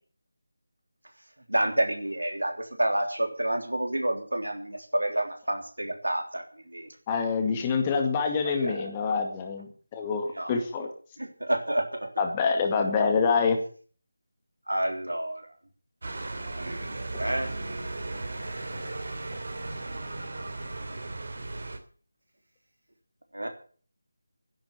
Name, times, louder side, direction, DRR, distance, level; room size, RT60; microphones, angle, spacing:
voice 1, 1.5-6.4 6.7-6.9 8.6-8.9 10.4-10.5 11.2-12.1 14.7-15.4 16.6-17.5 23.3-23.5, right 1 dB, 75° right, 5 dB, 3.4 m, -29 dB
voice 2, 7.1-9.7 9.9-10.9 12.2-13.6, left 5 dB, 15° left, 4 dB, 2.1 m, -26 dB
sound 1, 16.0-21.8, right 2 dB, 50° right, 2.8 m, -36 dB
13.0 x 10.5 x 7.0 m, 0.42 s
figure-of-eight pair, 160°, 0 cm